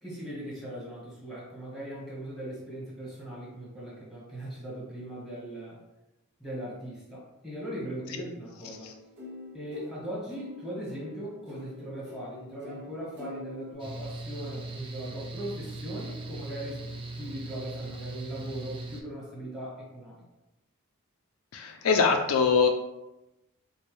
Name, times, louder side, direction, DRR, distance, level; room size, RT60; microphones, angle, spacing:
voice 1, 0.0-5.8 6.4-8.9 9.5-16.8 17.2-20.2, right 1 dB, ahead, -7 dB, 1.4 m, -39 dB
sound 1, 8.6-13.7, left 2 dB, 50° right, 0.8 m, -46 dB
Mechanical fan, 13.8-19.0, right 2 dB, 25° right, 0.4 m, -39 dB
voice 2, 21.5-22.7, left 5 dB, 70° left, 4 dB, 0.4 m, -23 dB
4.3 x 2.3 x 3.1 m, 0.95 s
head